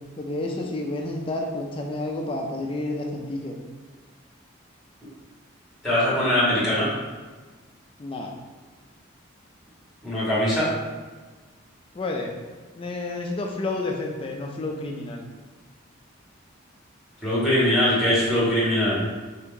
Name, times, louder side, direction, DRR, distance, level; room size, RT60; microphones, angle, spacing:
voice 1, 0.2-3.5 8.0-8.3 11.9-12.3 12.7-15.3, left 2 dB, 25° left, 1 dB, 0.3 m, -30 dB
voice 2, 5.8-6.9 10.0-10.7 17.2-19.0, left 1 dB, ahead, -9 dB, 1.3 m, -21 dB
3.5 x 2.8 x 3.6 m, 1.4 s
head